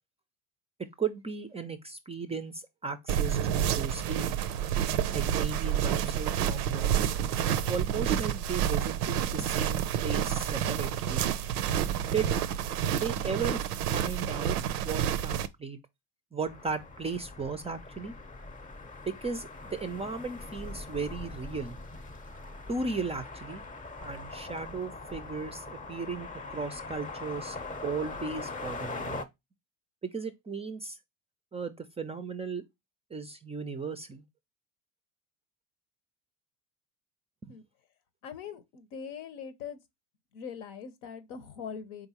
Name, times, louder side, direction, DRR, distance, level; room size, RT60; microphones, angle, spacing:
voice 1, 1.0-3.4 3.7-4.2 5.1-7.0 7.7-11.2 12.1-12.3 13.0-13.6 13.9-14.6 14.8-15.8 16.3-18.1 19.0-21.8 22.7-23.6 24.0-27.6 27.8-29.3 30.1-31.0 31.5-32.6 33.1-34.2 37.4-37.5, right 5 dB, 15° right, 0.4 m, -36 dB
sound 1, 3.1-15.5, right 9 dB, 85° right, 0.5 m, -29 dB
sound 2, 16.4-29.2, left 3 dB, 20° left, 0.7 m, -42 dB
voice 2, 38.2-39.8 40.3-42.1, left 7 dB, 75° left, 0.9 m, -42 dB
3.9 x 3.6 x 2.8 m
hypercardioid pair, 70°, 44 cm